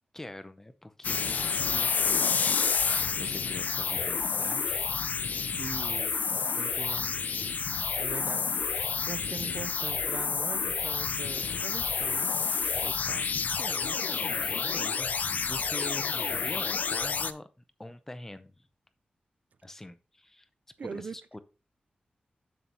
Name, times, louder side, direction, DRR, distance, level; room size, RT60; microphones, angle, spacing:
voice 1, 0.1-4.9 12.8-12.9 13.6-17.5 17.8-18.7 19.6-20.5 20.8-21.4, left 1 dB, 15° left, 0.7 m, -44 dB
sound 1, 1.0-17.3, left 5 dB, 65° left, 0.4 m, -29 dB
voice 2, 5.5-6.2 6.6-7.2 8.0-8.5 9.1-12.4 12.8-13.3 20.8-21.2, right 5 dB, 60° right, 0.4 m, -41 dB
7.6 x 6.8 x 2.9 m
wide cardioid pair, 150°, 3 cm